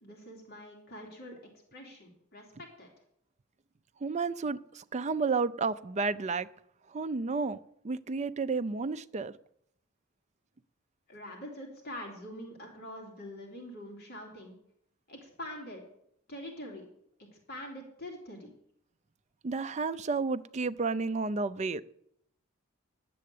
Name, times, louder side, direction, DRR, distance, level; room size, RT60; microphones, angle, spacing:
voice 1, 0.0-1.4 1.7-2.9 11.1-14.5 15.1-15.8 16.3-16.8 17.5-18.5, left 1 dB, 45° left, 0 dB, 2.9 m, -44 dB
voice 2, 4.0-6.5 6.9-7.6 7.8-9.3 19.4-21.8, right 4 dB, 30° right, 13 dB, 0.4 m, -31 dB
10.5 x 7.7 x 8.4 m, 0.72 s
head